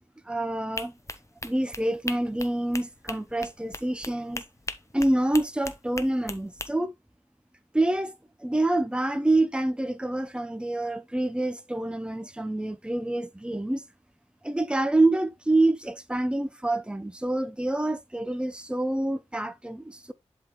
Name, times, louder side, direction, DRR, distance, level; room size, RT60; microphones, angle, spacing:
voice 1, 0.3-0.9 1.4-4.4 4.9-6.9 7.7-8.1 8.4-13.8 14.4-20.1, right 2 dB, 10° right, 0.8 m, -27 dB
sound 1, 0.8-6.7, left 2 dB, 25° left, 1.0 m, -38 dB
11.0 x 3.9 x 3.1 m
cardioid pair, 50°, 12 cm